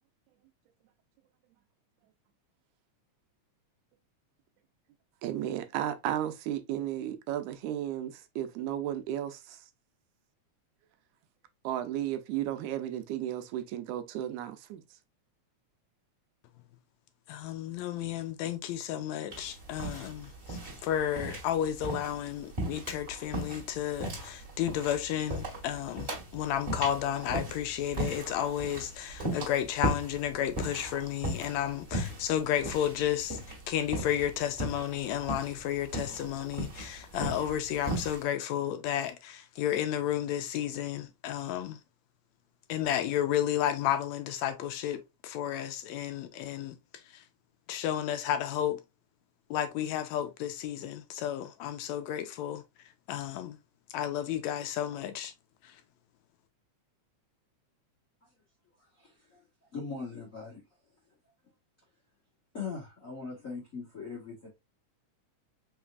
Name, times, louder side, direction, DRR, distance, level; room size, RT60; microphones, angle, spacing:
voice 1, 5.2-9.6 11.6-14.8, right 11 dB, 90° right, 2.0 m, -34 dB
voice 2, 17.3-20.3 20.8-33.4 33.7-41.8 42.7-46.8 47.7-48.8 49.5-52.6 53.1-53.6 53.9-55.3, left 10 dB, 80° left, 1.7 m, -32 dB
sound 1, 19.3-38.2, right 1 dB, 25° right, 2.0 m, -37 dB
voice 3, 59.0-59.4 59.7-60.6 62.5-64.5, left 5 dB, 60° left, 0.8 m, -40 dB
5.4 x 3.2 x 2.3 m
omnidirectional pair, 3.4 m